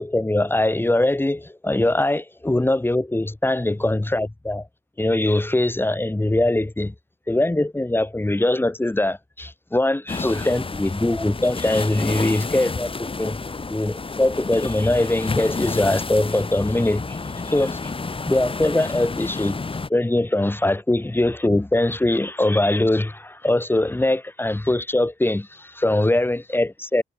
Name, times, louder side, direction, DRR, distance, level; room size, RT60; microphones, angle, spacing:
voice 1, 0.0-4.7 5.0-6.9 7.3-13.4 13.7-17.2 17.5-17.9 18.3-19.6 19.9-27.0, left 1 dB, 10° left, 3.7 m, -22 dB
sound 1, 10.1-19.9, left 4 dB, 25° left, 6.9 m, -30 dB
cardioid pair, 90°, 20 cm